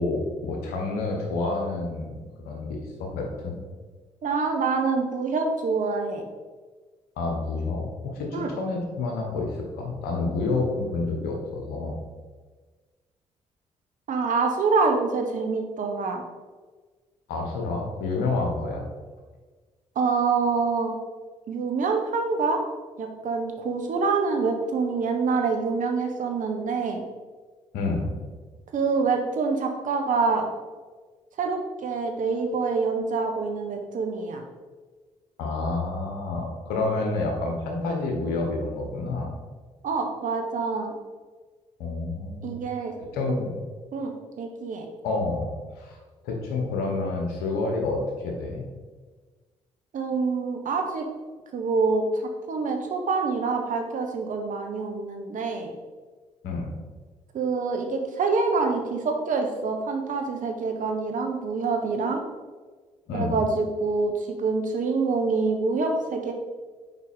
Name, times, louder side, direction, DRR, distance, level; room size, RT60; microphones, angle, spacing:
voice 1, 0.0-3.6 7.2-9.5 9.8-11.9 17.3-18.8 27.7-28.1 35.4-39.3 41.8-42.6 43.1-43.6 45.0-45.5 45.8-46.0 46.2-48.6 56.4-56.7 63.1-63.3, left 3 dB, 75° left, 1 dB, 1.2 m, -28 dB
voice 2, 4.2-6.2 8.3-8.5 14.1-16.2 19.9-20.9 21.5-22.6 23.0-27.0 28.7-30.5 31.4-34.4 39.8-40.9 42.4-42.9 43.9-44.1 44.4-44.9 49.9-51.0 51.5-55.7 57.3-62.2 63.1-66.3, right 4 dB, 55° right, 3 dB, 1.0 m, -26 dB
5.9 x 4.7 x 3.6 m, 1.4 s
hypercardioid pair, 45°, 16 cm